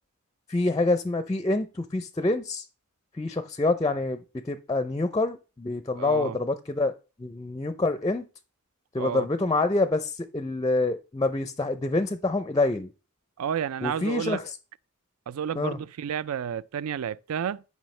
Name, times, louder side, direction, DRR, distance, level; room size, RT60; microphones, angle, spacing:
voice 1, 0.5-2.7 3.1-6.9 7.2-8.2 8.9-12.9 13.8-14.5 15.6-15.8, left 2 dB, 20° left, 0.4 m, -26 dB
voice 2, 6.0-6.4 9.0-9.3 13.4-14.4 15.3-17.6, right 8 dB, 75° right, 0.4 m, -31 dB
10.5 x 5.4 x 3.2 m
head